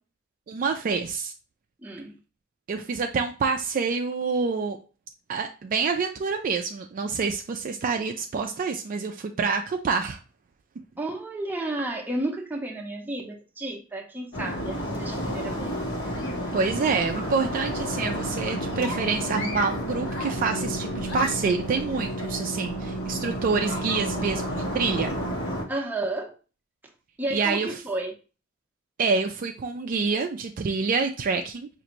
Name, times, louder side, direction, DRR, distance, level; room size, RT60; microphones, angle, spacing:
voice 1, 0.5-1.3 2.7-4.8 5.3-10.2 16.5-25.1 27.3-27.7 29.0-31.7, right 4 dB, 40° right, 0.3 m, -27 dB
voice 2, 1.8-2.2 11.0-15.7 16.0-16.4 25.7-26.3 27.2-28.1, right 2 dB, 10° right, 0.6 m, -32 dB
sound 1, 14.3-25.6, equal, 60° left, 1.1 m, -31 dB
5.2 x 2.5 x 2.9 m
head